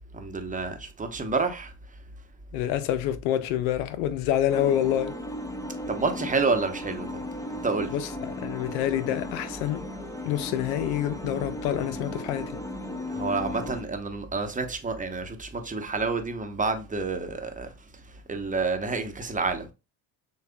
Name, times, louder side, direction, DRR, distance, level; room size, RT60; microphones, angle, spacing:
voice 1, 0.1-1.7 5.9-7.2 7.6-7.9 13.1-17.7 18.3-19.7, right 4 dB, 15° right, 0.9 m, -29 dB
voice 2, 2.5-5.2 7.9-9.9 10.3-12.6, left 11 dB, 80° left, 0.7 m, -27 dB
sound 1, 4.5-13.8, left 1 dB, 5° left, 0.7 m, -36 dB
6.6 x 2.4 x 2.2 m
hypercardioid pair, 60°, 48 cm